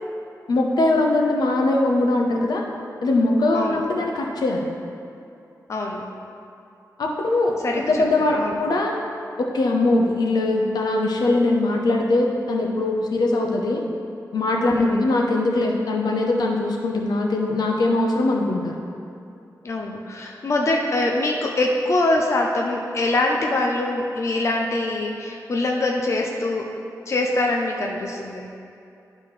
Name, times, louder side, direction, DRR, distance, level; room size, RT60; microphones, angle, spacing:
voice 1, 0.5-2.6 3.0-4.7 7.0-9.0 9.4-13.8 14.3-18.8, left 2 dB, 85° left, 0 dB, 0.8 m, -21 dB
voice 2, 5.7-6.0 7.6-8.0 8.3-8.7 14.7-15.1 19.6-26.7 27.1-28.5, left 2 dB, 45° left, 0 dB, 0.6 m, -24 dB
11.5 x 4.2 x 3.2 m, 2.6 s
wide cardioid pair, 135°, 7 cm